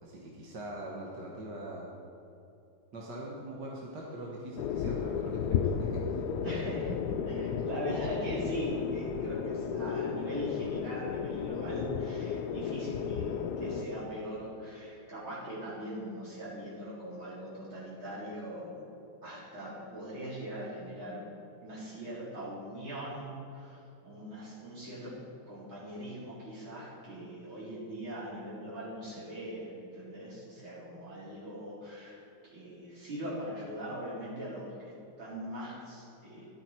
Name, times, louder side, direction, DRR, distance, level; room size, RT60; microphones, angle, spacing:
voice 1, 0.0-1.9 2.9-6.7, right 1 dB, 55° right, -3 dB, 1.9 m, -42 dB
sound 1, 4.6-13.9, left 7 dB, 75° left, 0.9 m, -33 dB
voice 2, 6.4-7.0 7.3-18.9 19.2-21.3 21.6-25.2 25.5-32.2 32.5-36.5, right 1 dB, 75° right, -8 dB, 4.6 m, -40 dB
13.5 x 11.5 x 4.4 m, 2.7 s
omnidirectional pair, 2.3 m